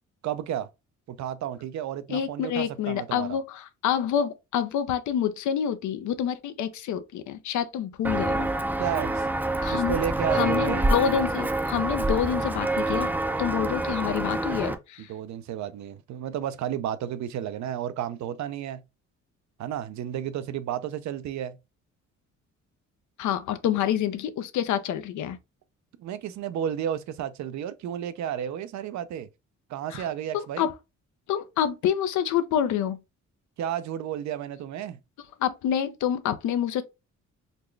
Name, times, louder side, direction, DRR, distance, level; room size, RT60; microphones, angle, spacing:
voice 1, 0.2-0.7 1.1-3.4 8.8-9.3 9.7-10.9 15.0-18.8 19.6-21.6 26.0-29.3 29.7-30.7 33.6-35.0, right 10 dB, 70° right, 0.5 m, -32 dB
voice 2, 2.1-8.5 9.6-10.0 10.3-13.1 13.4-15.1 23.2-25.4 29.9-30.1 30.3-30.7 31.3-33.0 35.4-36.8, left 9 dB, 75° left, 0.6 m, -27 dB
Walk footsteps, 8.0-14.7, right 2 dB, 5° right, 0.4 m, -27 dB
4.0 x 2.2 x 3.2 m
cardioid pair, 90°, 30 cm